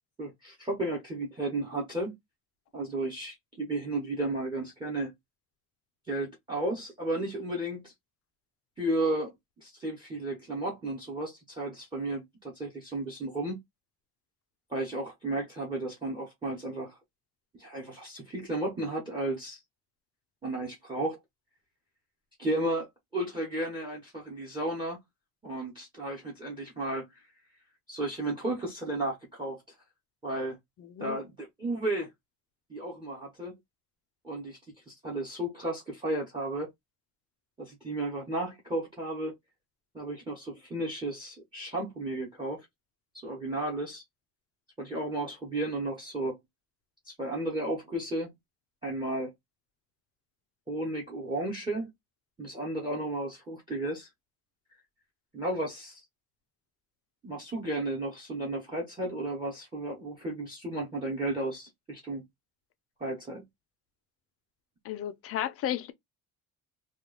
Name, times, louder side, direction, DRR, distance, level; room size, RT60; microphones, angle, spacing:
voice 1, 0.2-2.1 2.7-5.1 6.1-7.9 8.8-9.3 9.6-13.6 14.7-17.0 17.6-19.6 20.4-21.2 22.4-25.0 25.4-27.1 27.9-29.6 30.2-30.6 31.0-32.1 32.7-33.6 34.2-34.6 34.9-36.7 37.6-39.3 39.9-42.7 43.2-44.0 44.8-46.4 47.1-48.3 48.8-49.3 50.7-51.9 52.4-54.1 55.3-56.0 57.2-62.2 63.0-63.4, right 1 dB, 10° right, 0.9 m, -33 dB
voice 2, 30.9-31.2 64.8-65.9, left 11 dB, 40° left, 0.4 m, -33 dB
2.9 x 2.4 x 3.7 m
cardioid pair, 180°, 37 cm